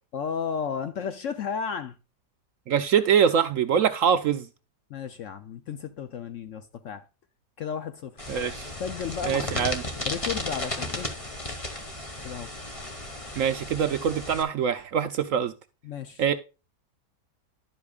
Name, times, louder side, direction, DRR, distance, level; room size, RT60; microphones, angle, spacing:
voice 1, 0.1-2.0 4.9-7.0 7.6-8.2 8.8-9.7 10.0-11.1 12.2-12.5 15.8-16.2, left 7 dB, 65° left, 0.8 m, -33 dB
voice 2, 2.7-4.5 8.3-8.7 9.2-9.8 13.4-15.5 16.2-16.3, right 8 dB, 65° right, 0.8 m, -24 dB
sound 1, 8.2-14.4, left 1 dB, 20° left, 1.4 m, -34 dB
11.0 x 8.4 x 2.4 m
omnidirectional pair, 1.8 m